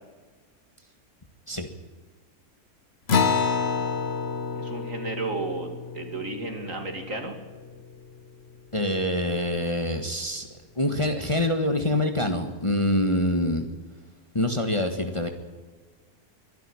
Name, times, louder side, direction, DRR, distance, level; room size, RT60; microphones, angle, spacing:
Acoustic guitar, 3.1-8.0, left 5 dB, 45° left, 1.3 m, -28 dB
voice 1, 4.6-7.3, right 3 dB, 60° right, 4 dB, 2.9 m, -33 dB
voice 2, 8.7-10.5 10.7-13.7 14.3-15.3, left 1 dB, 20° left, 5 dB, 1.6 m, -25 dB
23.5 x 11.5 x 9.9 m, 1.4 s
omnidirectional pair, 1.6 m